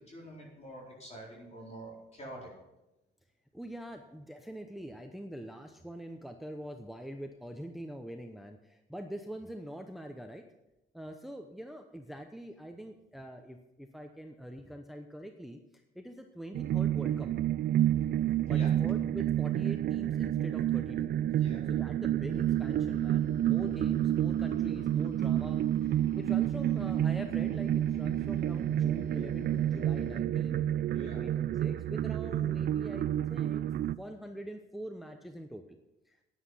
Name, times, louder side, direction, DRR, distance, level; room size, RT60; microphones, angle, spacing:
voice 1, 0.1-2.5 17.8-18.7 21.3-21.6 30.9-31.2, right 1 dB, 35° left, -3 dB, 4.2 m, -47 dB
voice 2, 3.5-10.4 10.9-15.6 15.9-17.3 18.4-30.6 30.9-33.7 34.0-35.8 36.1-36.2, equal, ahead, 6 dB, 0.8 m, -44 dB
sound 1, 16.5-33.9, right 11 dB, 55° right, 0.4 m, -29 dB
sound 2, 22.3-30.2, left 14 dB, 80° left, 1.0 m, -52 dB
9.9 x 9.7 x 5.6 m, 0.96 s
cardioid pair, 90°, 20 cm